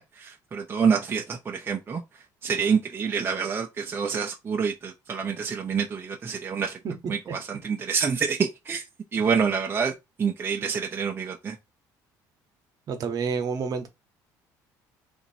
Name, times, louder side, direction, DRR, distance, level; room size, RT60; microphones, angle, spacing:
voice 1, 0.0-2.0 2.4-6.8 7.1-8.8 9.1-9.9 10.2-11.6, right 6 dB, 30° right, 0.6 m, -27 dB
voice 2, 12.9-13.9, right 5 dB, 50° right, 1.0 m, -29 dB
2.9 x 2.6 x 4.0 m
cardioid pair, 100°, 8 cm